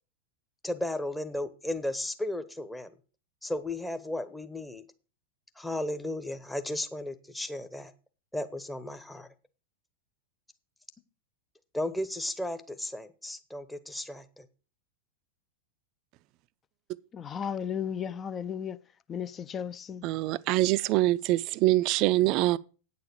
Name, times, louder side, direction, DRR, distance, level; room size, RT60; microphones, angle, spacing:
voice 1, 0.6-2.9 3.4-4.8 5.6-7.9 8.3-9.3 11.7-14.5, left 1 dB, 5° left, 0.9 m, -34 dB
voice 2, 17.1-18.8 19.1-20.1, left 8 dB, 25° left, 0.5 m, -34 dB
voice 3, 20.0-22.6, right 17 dB, 40° right, 0.4 m, -24 dB
9.0 x 6.8 x 6.7 m
figure-of-eight pair, 90°, 0 cm